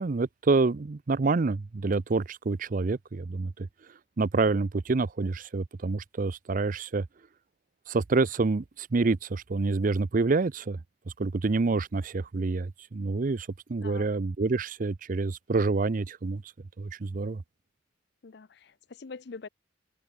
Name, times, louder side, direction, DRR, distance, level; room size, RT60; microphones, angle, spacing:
voice 1, 0.0-3.7 4.2-7.1 7.9-10.8 11.2-16.4 16.8-17.4, right 3 dB, 45° right, 0.5 m, -27 dB
voice 2, 13.8-14.1 18.2-19.5, left 4 dB, 60° left, 0.6 m, -44 dB
head